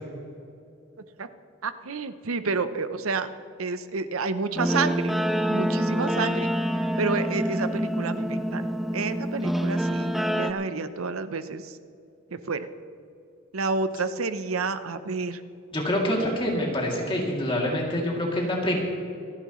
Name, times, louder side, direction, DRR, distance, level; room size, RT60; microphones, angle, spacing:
voice 1, 1.6-3.3 3.6-5.1 5.5-6.5 7.0-8.7 8.9-11.6 12.5-12.7 13.5-15.4, right 4 dB, 85° right, 12 dB, 0.7 m, -29 dB
Guitar, 4.6-10.5, equal, ahead, 0.5 m, -26 dB
voice 2, 15.7-18.8, left 1 dB, 25° left, -2 dB, 2.7 m, -26 dB
26.5 x 10.5 x 3.1 m, 2.6 s
head